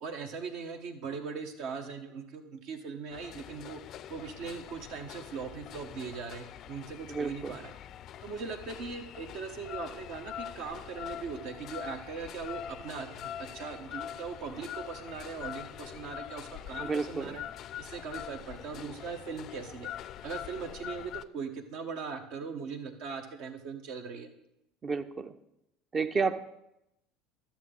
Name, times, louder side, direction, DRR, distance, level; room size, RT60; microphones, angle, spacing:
voice 1, 0.0-3.8 4.1-7.7 8.2-17.4 17.8-19.9 20.2-24.3, right 5 dB, 60° right, 7 dB, 1.2 m, -40 dB
sound 1, 3.1-21.2, left 10 dB, 50° left, 0.4 m, -44 dB
voice 2, 7.1-7.6 16.8-17.4 24.8-25.3 25.9-26.4, right 4 dB, 30° right, 11 dB, 0.7 m, -31 dB
12.5 x 7.3 x 3.8 m, 0.86 s
figure-of-eight pair, 70°, 0 cm